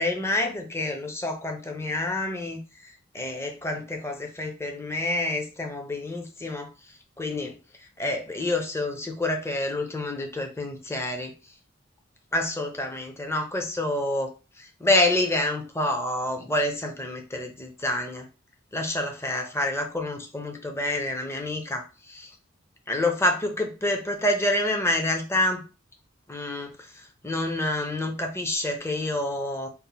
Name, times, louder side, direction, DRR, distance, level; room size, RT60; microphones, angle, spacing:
voice 1, 0.0-2.6 3.1-6.7 7.2-7.5 8.0-11.3 12.3-14.3 14.6-18.3 18.7-22.3 22.9-25.6 26.3-26.7 27.2-29.7, left 1 dB, 15° left, 3 dB, 0.6 m, -28 dB
4.1 x 2.1 x 3.9 m, 0.32 s
head